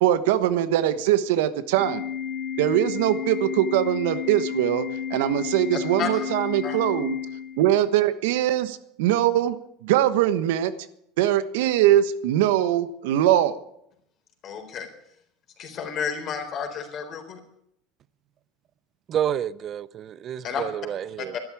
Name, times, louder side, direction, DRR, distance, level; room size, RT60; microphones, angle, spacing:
voice 1, 0.0-2.0 2.6-7.2 7.6-9.6 9.8-10.7 11.2-13.5, right 12 dB, 80° right, 1.2 m, -22 dB
Organ, 1.8-7.8, left 8 dB, 75° left, 3.4 m, -32 dB
voice 2, 14.4-14.9 15.6-17.4 20.4-20.6 21.3-21.4, left 7 dB, 45° left, 4.0 m, -31 dB
voice 3, 19.1-21.3, right 10 dB, 40° right, 0.6 m, -29 dB
12.5 x 11.5 x 8.5 m
supercardioid pair, 125°, 0 cm